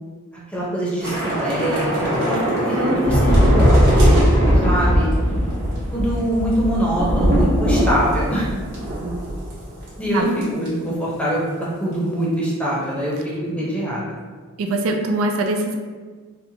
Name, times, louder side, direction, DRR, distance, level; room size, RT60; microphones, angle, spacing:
voice 1, 0.5-3.8 4.6-5.4 5.9-8.5 10.0-11.4 11.8-13.2 13.4-14.1, equal, 5° left, -6 dB, 0.7 m, -23 dB
Thunder / Rain, 1.0-9.6 9.9-10.1 10.4-10.7, equal, 50° right, 1.1 m, -19 dB
voice 2, 14.6-15.8, right 2 dB, 70° right, 3 dB, 0.3 m, -23 dB
4.1 x 2.2 x 2.7 m, 1.5 s
head